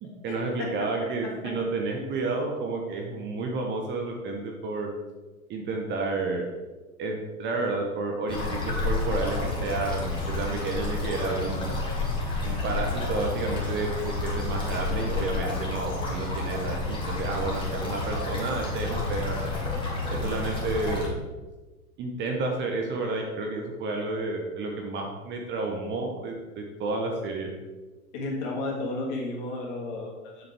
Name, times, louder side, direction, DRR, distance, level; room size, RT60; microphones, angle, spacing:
voice 1, 0.0-4.9 5.5-6.5 7.0-11.7 12.4-19.5 20.1-21.1 22.0-27.5, right 3 dB, 25° right, 1 dB, 0.9 m, -31 dB
sound 1, 8.3-21.1, left 3 dB, 10° left, 2.1 m, -30 dB
voice 2, 28.1-30.5, left 2 dB, 40° left, -2 dB, 2.6 m, -33 dB
7.5 x 7.5 x 3.5 m, 1.2 s
figure-of-eight pair, 100°, 43 cm